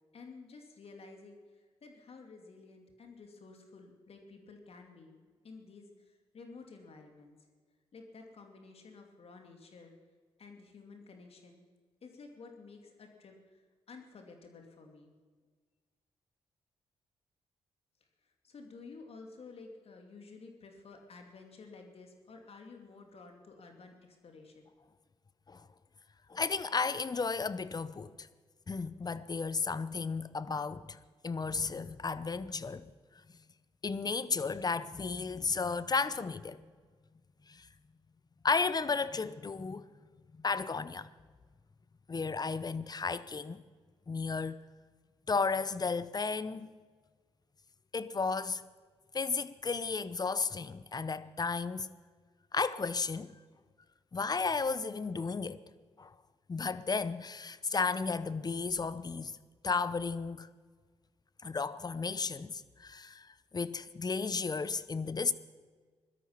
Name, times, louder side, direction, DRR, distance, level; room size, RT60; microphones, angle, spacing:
voice 1, 0.1-7.4 7.9-9.9 10.4-11.7 12.0-15.1 18.2-24.6, left 4 dB, 60° left, 2.6 m, -52 dB
voice 2, 26.3-28.3 28.7-31.0 31.2-32.9 33.8-36.7 37.5-37.7 38.4-39.8 40.4-41.1 42.1-43.6 44.1-44.6 45.3-46.7 47.9-48.6 49.1-51.9 52.5-53.4 54.1-55.6 56.0-56.1 56.5-59.4 59.6-60.5 61.4-65.3, left 4 dB, 35° left, 0.8 m, -33 dB
17.0 x 12.5 x 5.9 m
supercardioid pair, 55°, 12 cm